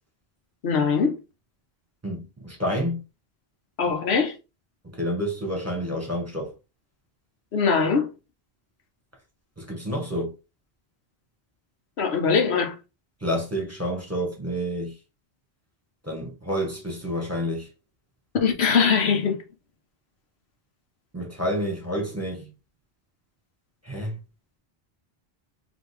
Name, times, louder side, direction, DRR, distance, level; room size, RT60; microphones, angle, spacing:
voice 1, 0.6-1.2 3.8-4.3 7.5-8.1 12.0-12.7 18.4-19.4, left 5 dB, 85° left, 1.2 m, -21 dB
voice 2, 2.0-3.0 5.0-6.5 9.6-10.3 13.2-14.9 16.0-17.7 21.1-22.5 23.8-24.2, equal, 15° right, 1.5 m, -29 dB
5.2 x 2.9 x 3.2 m
omnidirectional pair, 1.0 m